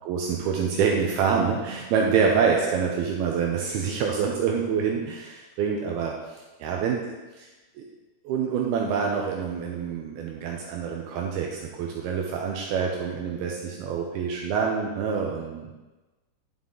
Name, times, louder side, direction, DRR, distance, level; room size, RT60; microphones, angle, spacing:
voice 1, 0.0-6.1 6.6-7.1 7.4-7.5 7.8-7.9 8.2-15.7, right 6 dB, 80° right, 0 dB, 2.4 m, -26 dB
11.0 x 5.6 x 3.8 m, 1.2 s
omnidirectional pair, 5.1 m